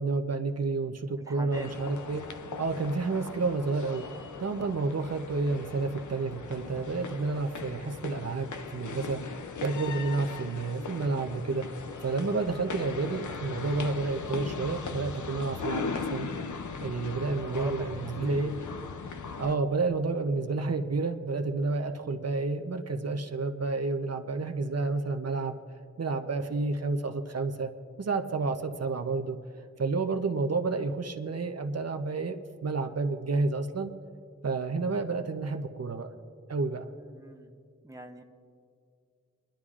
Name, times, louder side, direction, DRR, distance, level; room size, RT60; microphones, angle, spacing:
voice 1, 0.0-2.2 2.6-4.0 4.4-9.2 9.6-11.7 12.0-16.3 16.8-18.5 19.4-25.6 26.0-27.7 28.0-29.4 29.8-33.9 34.4-36.1 36.5-36.9, right 3 dB, 60° right, 5 dB, 0.7 m, -30 dB
voice 2, 1.2-1.7 17.4-17.7 18.3-18.4 37.0-37.6 37.8-38.2, right 1 dB, 10° right, 4 dB, 0.7 m, -43 dB
sound 1, 1.5-19.5, left 5 dB, 90° left, 0.5 m, -39 dB
29.0 x 11.5 x 2.4 m, 2.3 s
wide cardioid pair, 70°, 29 cm